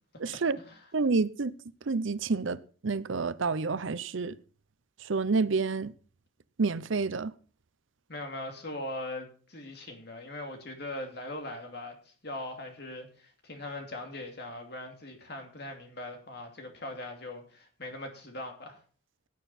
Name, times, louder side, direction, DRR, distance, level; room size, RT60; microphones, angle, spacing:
voice 1, 0.2-0.6 0.9-1.5 1.9-4.3 5.0-5.9 6.6-7.3, right 4 dB, 70° right, 0.6 m, -29 dB
voice 2, 8.1-18.8, left 1 dB, 50° left, 2.8 m, -40 dB
16.5 x 9.2 x 4.3 m
head